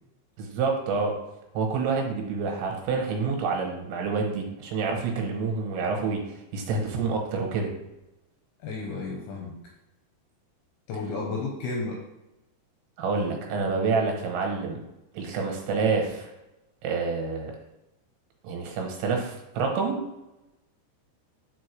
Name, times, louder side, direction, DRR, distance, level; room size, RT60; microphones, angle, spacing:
voice 1, 0.4-1.2 1.5-6.2 6.5-7.7 13.0-14.8 15.1-16.3 16.8-17.5 18.4-20.0, right 4 dB, 85° right, 1 dB, 3.2 m, -27 dB
voice 2, 8.6-9.5 10.9-12.0, left 3 dB, 80° left, 0 dB, 2.3 m, -32 dB
7.0 x 4.4 x 3.1 m, 0.94 s
omnidirectional pair, 5.3 m